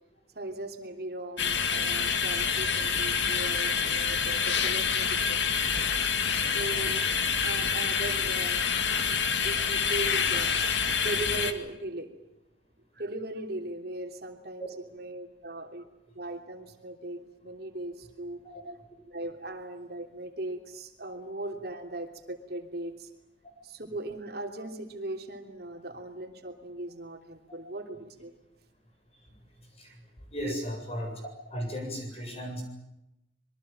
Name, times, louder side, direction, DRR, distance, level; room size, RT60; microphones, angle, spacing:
voice 1, 0.3-5.4 6.2-7.1 7.4-10.5 11.0-12.1 12.9-14.7 14.9-15.8 16.1-18.8 19.1-23.1 23.6-28.3 29.8-30.0 30.4-30.6, right 2 dB, 60° right, 4 dB, 3.1 m, -38 dB
sound 1, 1.4-11.5, left 6 dB, 80° left, 2.1 m, -27 dB
voice 2, 30.3-31.1 31.5-32.6, equal, 35° left, 3 dB, 7.9 m, -36 dB
26.5 x 22.5 x 9.1 m, 0.91 s
head